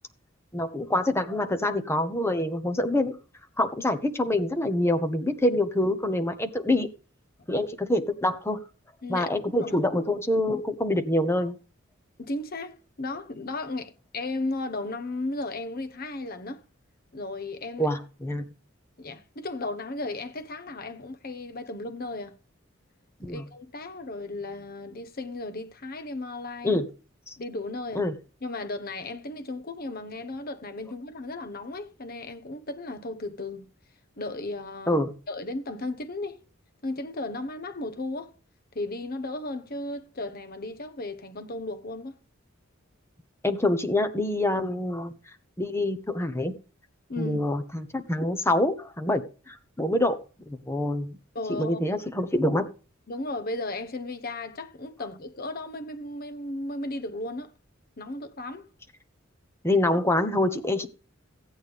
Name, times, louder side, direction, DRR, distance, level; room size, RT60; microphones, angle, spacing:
voice 1, 0.5-3.2 3.6-6.9 7.5-8.6 9.1-11.6 17.8-18.4 23.2-23.4 26.6-26.8 27.3-27.4 27.9-28.1 34.9-35.1 43.4-45.1 45.6-46.5 47.2-50.2 50.5-51.2 51.5-52.7 59.6-60.9, left 1 dB, 15° left, 1.1 m, -26 dB
voice 2, 12.2-16.6 17.1-17.9 19.0-22.4 23.3-26.8 27.4-28.1 28.4-33.7 34.2-36.4 36.8-38.3 38.7-42.2 47.1-47.4 51.3-51.8 53.1-57.5 58.0-58.7, left 2 dB, 45° left, 1.1 m, -35 dB
15.0 x 8.8 x 3.5 m
head